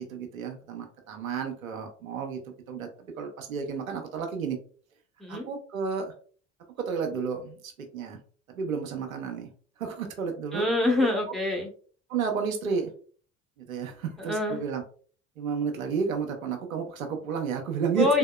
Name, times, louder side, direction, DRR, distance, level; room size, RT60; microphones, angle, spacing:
voice 1, 0.0-2.4 2.7-4.6 5.3-6.1 6.8-8.2 8.5-9.5 9.8-10.6 11.0-11.1 12.1-12.9 13.7-14.8 15.4-18.1, right 6 dB, 80° right, 3 dB, 0.7 m, -31 dB
voice 2, 10.5-11.7 14.2-14.6 18.0-18.2, left 2 dB, ahead, 0 dB, 1.0 m, -25 dB
3.6 x 2.7 x 2.2 m, 0.43 s
figure-of-eight pair, 60°, 40 cm